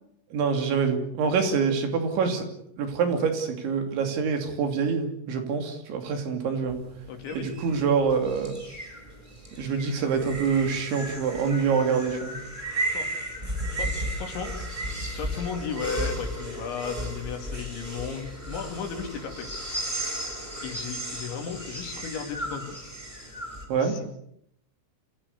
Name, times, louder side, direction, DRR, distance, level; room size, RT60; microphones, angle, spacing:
voice 1, 0.3-2.5 2.8-6.8 7.3-8.6 9.6-12.4 23.7-24.0, right 5 dB, 70° right, 5 dB, 5.0 m, -26 dB
sound 1, 6.7-23.6, right 1 dB, 10° right, 4.6 m, -34 dB
voice 2, 7.1-7.5 12.7-13.1 13.4-14.6 15.1-19.6 20.6-22.8 23.8-24.0, left 6 dB, 65° left, 5 dB, 5.1 m, -35 dB
27.5 x 16.0 x 8.3 m, 0.74 s
omnidirectional pair, 5.7 m